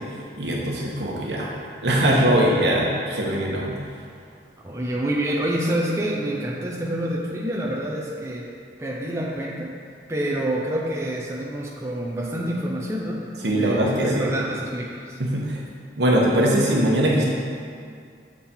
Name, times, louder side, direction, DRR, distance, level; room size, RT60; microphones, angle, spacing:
voice 1, 0.4-1.5 1.8-3.7 13.4-14.3 15.2-15.6 16.0-17.2, right 1 dB, 75° right, -3 dB, 1.1 m, -21 dB
voice 2, 4.6-8.5 8.8-9.7 10.1-15.2, right 1 dB, 15° right, -4 dB, 0.6 m, -27 dB
7.4 x 3.7 x 4.3 m, 2.3 s
head